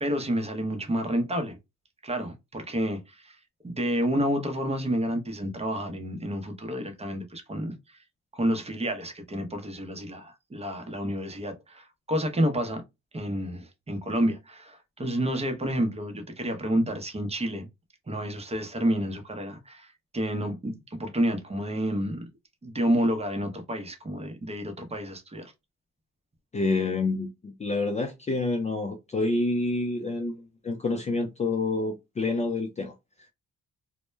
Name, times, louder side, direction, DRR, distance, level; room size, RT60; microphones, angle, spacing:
voice 1, 0.0-1.6 2.0-3.4 3.6-8.0 8.3-12.8 13.1-17.7 18.1-19.9 20.1-22.3 22.6-25.5, equal, 20° right, 0.7 m, -29 dB
voice 2, 26.5-32.9, left 3 dB, 25° left, 0.4 m, -28 dB
2.1 x 2.1 x 3.1 m
cardioid pair, 90°, 30 cm